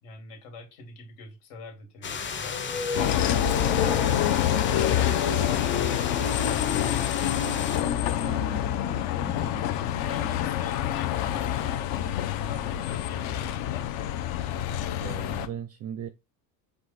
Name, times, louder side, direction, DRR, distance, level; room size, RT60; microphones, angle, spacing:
voice 1, 0.0-2.6 4.8-7.1 8.2-8.5 9.3-9.5 9.9-11.8 12.3-13.9, left 3 dB, 80° left, 2.0 m, -44 dB
sound 1, 2.0-7.8, left 6 dB, 25° left, 0.6 m, -35 dB
sound 2, 2.4-11.3, left 6 dB, 45° left, 1.6 m, -34 dB
Bus, 2.9-15.5, left 11 dB, 65° left, 0.8 m, -27 dB
voice 2, 15.0-16.1, right 9 dB, 35° right, 0.4 m, -38 dB
4.8 x 2.4 x 4.0 m
supercardioid pair, 105°, 47 cm